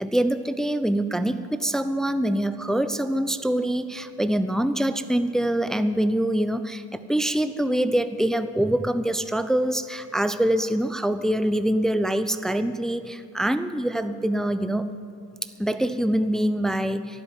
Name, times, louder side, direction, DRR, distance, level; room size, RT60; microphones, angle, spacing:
voice 1, 0.0-14.9 15.6-17.2, right 1 dB, ahead, 11 dB, 0.7 m, -24 dB
12.0 x 11.0 x 9.4 m, 2.6 s
hypercardioid pair, 55°, 46 cm